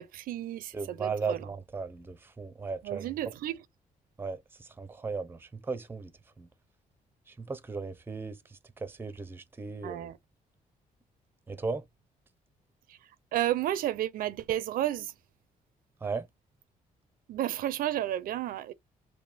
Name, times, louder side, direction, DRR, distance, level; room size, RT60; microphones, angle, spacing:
voice 1, 0.0-1.5 2.8-3.6 9.8-10.2 12.9-13.0 13.3-15.1 17.3-18.7, right 13 dB, 80° right, 0.5 m, -32 dB
voice 2, 0.7-3.1 4.2-6.1 6.4-6.5 7.3-8.4 8.8-10.1 11.5-11.8 16.0-16.3, right 4 dB, 15° right, 0.6 m, -36 dB
3.5 x 2.7 x 4.1 m
cardioid pair, 130°, 15 cm